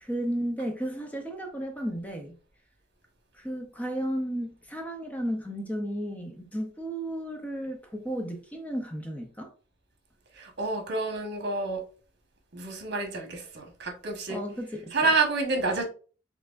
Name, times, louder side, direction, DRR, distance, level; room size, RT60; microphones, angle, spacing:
voice 1, 0.0-2.4 3.3-9.5 14.3-14.9, equal, 10° left, 0.6 m, -33 dB
voice 2, 10.3-11.8 12.5-14.4 14.9-15.8, right 3 dB, 60° right, 1.2 m, -28 dB
4.4 x 3.4 x 2.5 m
head